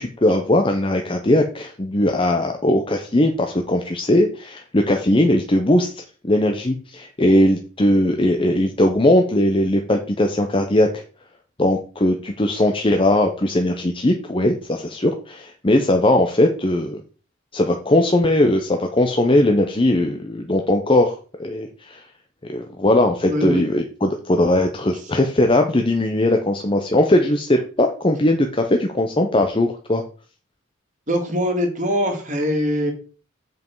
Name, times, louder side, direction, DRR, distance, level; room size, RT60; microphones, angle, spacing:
voice 1, 0.0-11.0 11.6-17.0 17.5-22.1 22.4-30.0, left 1 dB, 25° left, 4 dB, 0.7 m, -19 dB
voice 2, 23.3-23.6 31.1-32.9, equal, 35° right, 3 dB, 2.0 m, -22 dB
7.8 x 5.4 x 4.6 m, 0.38 s
head